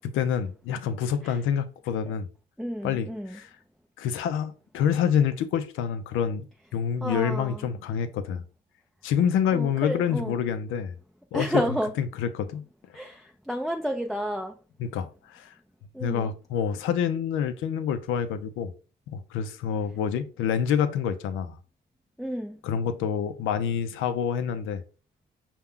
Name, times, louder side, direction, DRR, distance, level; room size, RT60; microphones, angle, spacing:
voice 1, 0.1-2.3 2.8-3.5 4.0-6.5 6.7-8.4 9.0-10.9 11.3-11.6 12.0-12.6 14.8-15.5 16.0-18.7 19.1-21.6 22.6-24.8, left 8 dB, 90° left, 0.5 m, -27 dB
voice 2, 2.6-3.4 7.0-7.6 9.5-10.3 11.3-11.9 12.9-14.6 15.9-16.3 22.2-22.6, equal, ahead, 0.4 m, -31 dB
5.6 x 2.3 x 3.5 m
cardioid pair, 90°, 20 cm